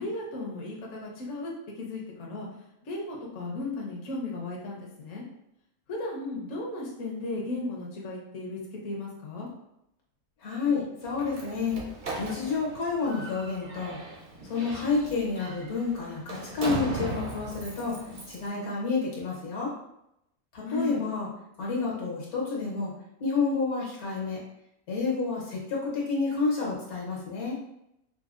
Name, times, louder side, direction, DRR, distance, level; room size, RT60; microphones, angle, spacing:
voice 1, 0.0-1.5 1.8-2.5 2.8-5.2 5.9-9.5 20.6-21.0, left 2 dB, 65° left, -3 dB, 1.0 m, -35 dB
voice 2, 10.4-11.8 12.2-14.0 14.4-19.7 20.5-21.3 21.6-22.9 23.2-24.4 24.9-27.6, left 4 dB, 80° left, -4 dB, 1.5 m, -29 dB
Slam, 11.0-18.5, right 2 dB, 45° right, 0.7 m, -38 dB
5.1 x 2.0 x 2.4 m, 0.81 s
omnidirectional pair, 1.5 m